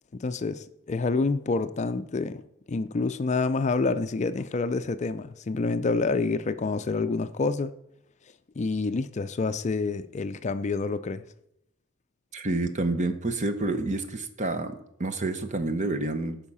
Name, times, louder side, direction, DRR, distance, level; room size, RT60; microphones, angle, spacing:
voice 1, 0.2-2.4 2.7-7.7 8.6-11.2, left 3 dB, 35° left, 0.4 m, -27 dB
voice 2, 12.3-16.4, right 2 dB, 35° right, 1.0 m, -29 dB
13.5 x 5.6 x 5.5 m
head